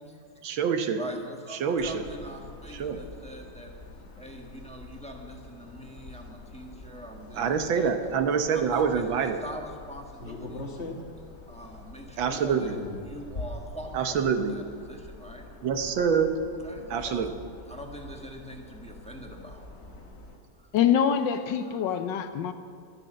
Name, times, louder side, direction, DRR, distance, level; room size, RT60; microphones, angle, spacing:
voice 1, 0.4-1.0 1.6-2.0 2.7-3.0 7.3-9.4 12.2-12.8 13.9-14.5 15.6-16.3 16.9-17.3, right 6 dB, 80° right, 7 dB, 1.7 m, -26 dB
voice 2, 1.0-3.7 4.2-7.9 8.3-11.0 11.5-12.8 13.1-15.5 16.6-17.3 17.7-19.7 20.6-20.7 21.7-21.8, equal, 5° left, 1 dB, 1.1 m, -43 dB
sound 1, 1.8-20.4, left 2 dB, 35° left, 1.4 m, -44 dB
voice 3, 20.7-22.5, left 8 dB, 70° left, 9 dB, 1.3 m, -25 dB
12.0 x 10.0 x 7.6 m, 2.3 s
omnidirectional pair, 2.2 m